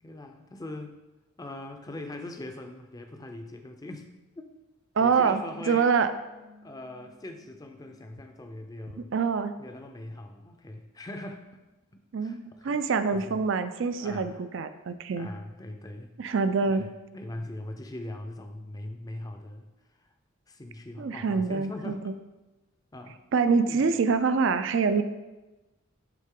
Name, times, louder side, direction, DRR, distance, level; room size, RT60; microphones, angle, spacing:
voice 1, 0.0-1.0 1.4-4.1 4.4-4.5 5.0-5.9 6.6-9.1 9.6-11.6 11.9-12.8 13.1-13.4 14.0-14.4 14.7-14.8 15.1-16.2 16.6-20.1 20.5-22.2 22.9-23.2 23.7-23.9, left 1 dB, 15° left, 5 dB, 0.5 m, -41 dB
voice 2, 5.0-6.1 9.1-9.5 12.1-15.3 16.2-16.8 21.0-22.1 23.3-25.0, right 5 dB, 60° right, 11 dB, 0.4 m, -25 dB
sound 1, 5.1-8.4 8.7-8.8, left 2 dB, 75° left, 1.9 m, -51 dB
11.0 x 3.7 x 3.7 m, 1.1 s
head